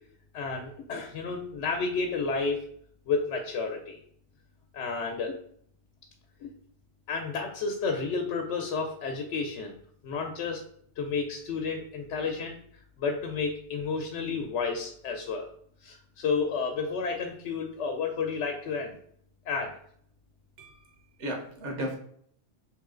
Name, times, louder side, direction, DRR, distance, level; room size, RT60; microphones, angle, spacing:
voice 1, 0.3-2.6 3.1-4.0 4.7-5.4 6.4-6.5 7.1-9.8 10.0-10.6 11.0-12.6 13.0-15.5 15.8-19.0 19.5-19.8, left 4 dB, 85° left, 3 dB, 0.9 m, -31 dB
voice 2, 20.6-22.0, equal, 80° right, 1 dB, 1.3 m, -36 dB
3.2 x 3.1 x 3.6 m, 0.63 s
omnidirectional pair, 1.2 m